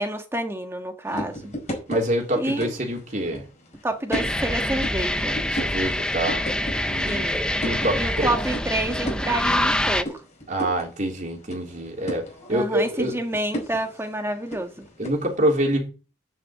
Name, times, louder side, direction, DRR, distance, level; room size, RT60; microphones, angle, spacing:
voice 1, 0.0-1.4 2.3-2.7 3.8-5.4 7.1-7.4 7.9-10.2 12.5-14.8, right 1 dB, 15° right, 1.6 m, -28 dB
sound 1, 1.0-15.3, equal, 35° left, 4.9 m, -37 dB
voice 2, 1.9-3.5 5.5-6.4 6.8-8.4 10.5-13.2 15.0-15.9, right 1 dB, 40° right, 3.6 m, -26 dB
sound 2, 4.1-10.0, left 1 dB, 5° left, 0.7 m, -25 dB
10.5 x 6.5 x 7.6 m
head